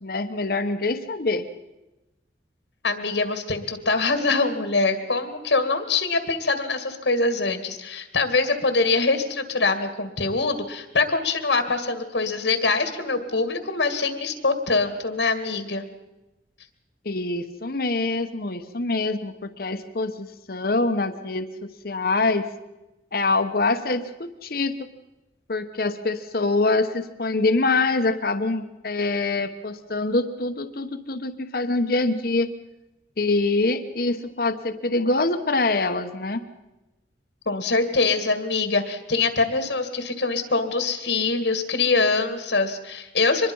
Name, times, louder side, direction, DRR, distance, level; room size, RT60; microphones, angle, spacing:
voice 1, 0.0-1.4 17.0-22.5 23.1-24.9 25.5-32.5 33.2-36.4, left 3 dB, 55° left, 8 dB, 1.1 m, -25 dB
voice 2, 2.8-15.9 37.5-43.5, left 3 dB, 85° left, 8 dB, 2.2 m, -24 dB
24.5 x 21.0 x 5.5 m, 0.98 s
head